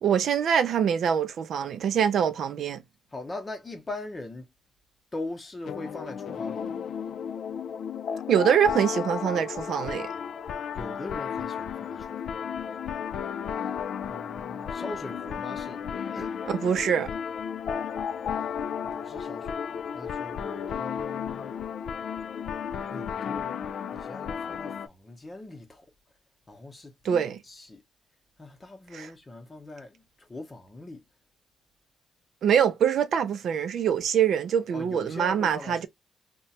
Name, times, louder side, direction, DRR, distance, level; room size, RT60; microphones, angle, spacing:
voice 1, 0.0-2.8 8.3-10.1 16.5-17.1 27.0-27.4 28.9-29.1 32.4-35.9, right 8 dB, 60° right, 0.4 m, -24 dB
voice 2, 3.1-4.5 5.1-6.8 10.7-12.3 14.1-15.8 16.1-16.4 18.4-18.5 18.8-21.5 22.9-23.6 23.9-25.9 26.5-27.8 28.4-31.0 34.7-35.9, left 2 dB, 20° left, 0.7 m, -41 dB
sound 1, 5.6-24.9, left 7 dB, 60° left, 0.3 m, -33 dB
3.0 x 2.2 x 2.7 m
cardioid pair, 145°, 0 cm